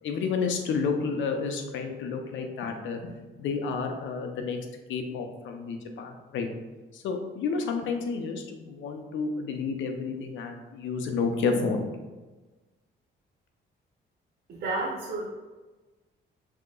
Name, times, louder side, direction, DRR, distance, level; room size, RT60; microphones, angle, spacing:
voice 1, 0.0-3.0 3.4-4.6 4.9-6.5 6.9-12.0, left 5 dB, 75° left, 4 dB, 0.7 m, -30 dB
voice 2, 14.5-15.3, right 2 dB, 60° right, -4 dB, 0.8 m, -31 dB
6.2 x 2.8 x 2.4 m, 1.2 s
cardioid pair, 90°, 20 cm